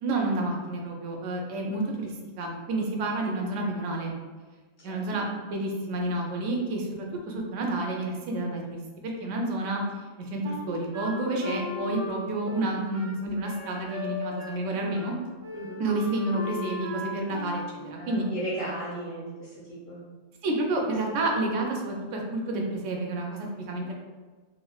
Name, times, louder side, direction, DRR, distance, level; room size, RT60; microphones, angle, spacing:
voice 1, 0.0-4.1 4.8-9.8 10.2-15.1 15.8-18.2 20.4-23.9, right 2 dB, 70° right, 0 dB, 0.9 m, -30 dB
Wind instrument woodwind instrument, 10.4-14.7 14.9-15.1 15.4-17.7, left 2 dB, 45° right, 0.4 m, -37 dB
voice 2, 18.0-20.0 23.8-23.9, right 1 dB, 70° left, -8 dB, 1.9 m, -36 dB
3.3 x 3.1 x 2.3 m, 1.4 s
omnidirectional pair, 1.4 m